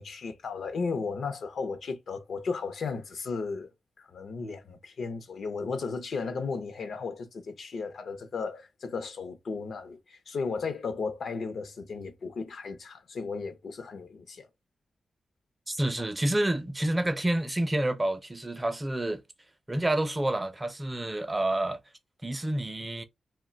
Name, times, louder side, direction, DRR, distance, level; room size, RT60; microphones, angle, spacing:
voice 1, 0.0-3.7 4.0-14.5, left 4 dB, 75° left, 0.6 m, -35 dB
voice 2, 15.7-19.2 19.7-21.8 22.2-23.0, right 1 dB, 20° right, 0.5 m, -28 dB
2.3 x 2.2 x 3.8 m
cardioid pair, 75°, 0 cm